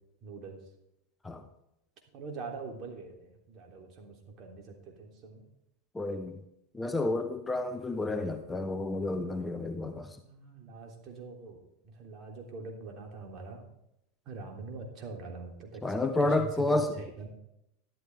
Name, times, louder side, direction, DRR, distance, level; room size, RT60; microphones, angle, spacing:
voice 1, 0.2-0.6 2.1-5.5 10.2-11.6 11.8-13.6 14.2-17.3, right 3 dB, 45° right, 2 dB, 3.4 m, -43 dB
voice 2, 5.9-6.4 6.7-10.2 15.8-16.9, left 2 dB, 15° left, 8 dB, 1.1 m, -30 dB
12.5 x 12.0 x 3.7 m, 0.82 s
hypercardioid pair, 85°, 0 cm